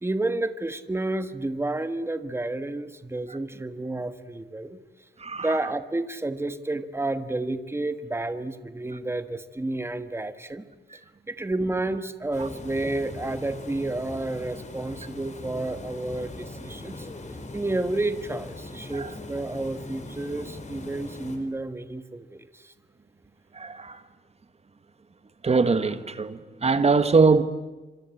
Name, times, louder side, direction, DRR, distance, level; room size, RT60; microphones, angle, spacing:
voice 1, 0.0-4.8 5.4-10.6 10.9-11.0 11.3-17.1 17.5-22.7, right 2 dB, 15° right, 1.4 m, -30 dB
Water, 12.3-21.4, left 2 dB, 40° left, 4.2 m, -40 dB
voice 2, 23.5-24.0 25.4-27.4, right 4 dB, 35° right, 1.6 m, -22 dB
26.5 x 26.0 x 8.4 m
wide cardioid pair, 130°, 18 cm